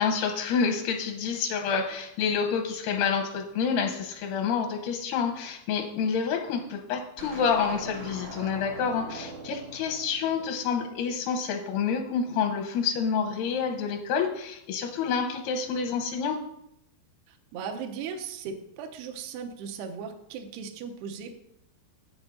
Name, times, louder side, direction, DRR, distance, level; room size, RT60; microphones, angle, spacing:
voice 1, 0.0-16.4, left 6 dB, 80° left, 3 dB, 2.3 m, -28 dB
sound 1, 7.2-11.6, right 2 dB, 65° right, 2.2 m, -42 dB
voice 2, 17.3-21.3, right 6 dB, 80° right, 4 dB, 2.4 m, -37 dB
8.3 x 7.2 x 5.2 m, 0.78 s
omnidirectional pair, 5.5 m